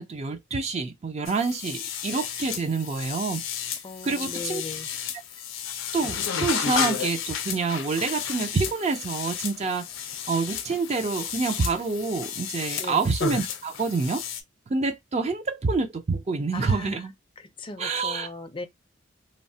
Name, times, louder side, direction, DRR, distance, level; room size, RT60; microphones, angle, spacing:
voice 1, 0.0-3.4 4.0-4.6 5.9-9.8 10.3-14.2 14.7-17.1 17.8-18.3, right 4 dB, 35° right, 0.4 m, -27 dB
sound 1, 1.3-14.4, left 8 dB, 90° left, 0.5 m, -33 dB
voice 2, 3.8-4.9 12.8-13.0 16.5-17.1 17.4-18.7, left 3 dB, 25° left, 0.4 m, -38 dB
3.1 x 2.0 x 2.6 m
head